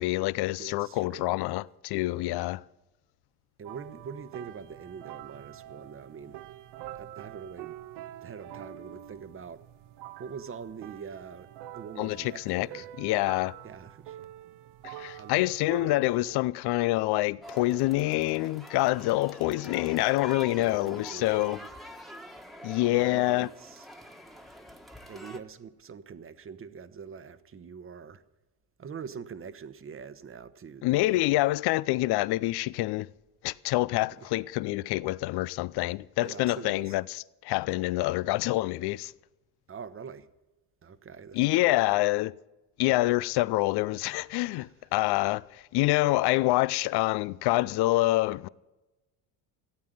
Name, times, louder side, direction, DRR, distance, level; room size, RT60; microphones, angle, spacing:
voice 1, 0.0-2.6 12.0-12.7 13.0-13.5 14.8-21.6 22.6-23.5 30.8-33.1 33.4-37.0 37.4-39.1 41.3-42.3 42.8-48.5, left 18 dB, 60° left, 0.6 m, -26 dB
voice 2, 0.6-1.4 3.6-6.4 6.9-7.8 8.2-9.6 10.2-12.9 13.6-14.2 15.1-15.4 20.5-21.7 22.9-23.9 25.1-28.2 28.8-31.2 34.1-34.3 36.2-36.9 39.7-40.3 40.8-42.0 44.5-44.7, right 6 dB, 30° right, 1.1 m, -44 dB
sound 1, 3.7-16.4, right 12 dB, 65° right, 0.9 m, -46 dB
sound 2, 17.4-25.4, equal, ahead, 1.5 m, -46 dB
16.0 x 8.7 x 9.2 m
supercardioid pair, 90°, 44 cm